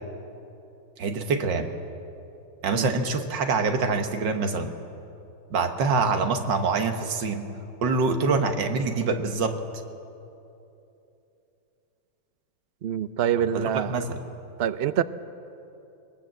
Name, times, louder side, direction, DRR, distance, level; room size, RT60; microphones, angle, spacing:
voice 1, 1.0-1.7 2.6-4.8 5.5-7.5 7.8-9.6 13.5-14.2, right 4 dB, 85° right, 6 dB, 2.0 m, -25 dB
voice 2, 12.8-14.0 14.6-15.0, right 9 dB, 70° right, 13 dB, 0.6 m, -25 dB
21.0 x 20.0 x 7.7 m, 2.8 s
omnidirectional pair, 1.9 m